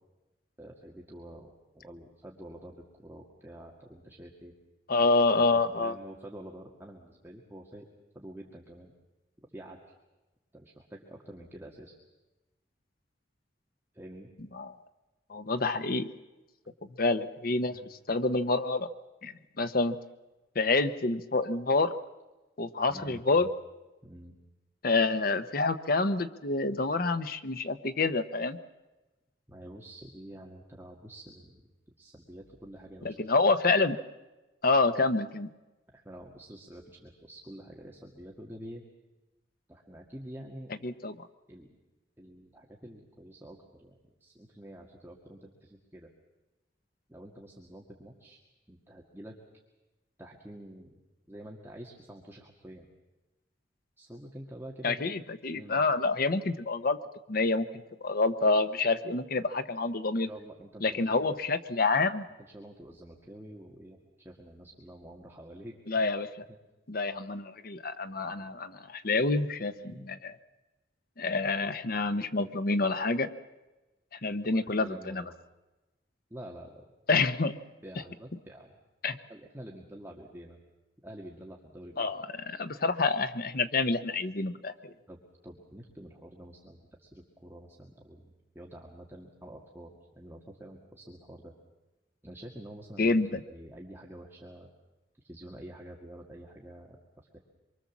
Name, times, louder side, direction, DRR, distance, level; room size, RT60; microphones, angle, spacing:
voice 1, 0.6-4.5 5.4-7.9 8.1-8.9 9.5-9.8 10.5-11.9 13.9-14.3 17.6-17.9 22.9-23.5 24.0-24.4 29.5-31.6 32.0-33.2 35.9-38.8 39.7-40.9 41.5-41.8 42.2-46.1 47.1-48.4 48.7-49.3 50.2-50.9 51.3-52.9 54.0-55.0 55.5-55.9 60.2-61.3 62.5-66.0 66.5-66.6 69.1-69.2 69.8-70.1 74.5-75.3 76.3-76.8 77.1-77.3 77.8-78.8 79.3-80.6 81.0-82.1 85.1-91.5 92.2-94.7 95.2-97.0 97.3-97.4, right 1 dB, 15° right, -1 dB, 2.0 m, -48 dB
voice 2, 4.9-5.9 14.6-14.7 15.3-16.1 17.0-17.8 18.1-18.9 19.2-20.0 20.5-21.9 22.6-23.5 24.8-28.6 33.0-34.0 34.6-35.5 40.8-41.1 54.8-57.0 57.3-57.7 58.0-60.3 60.8-62.3 65.9-66.4 66.9-70.3 71.2-73.3 74.2-75.2 77.1-77.5 79.0-79.1 82.0-84.9 93.0-93.4, left 3 dB, 55° left, 10 dB, 1.0 m, -27 dB
25.0 x 23.5 x 7.3 m, 1.1 s
head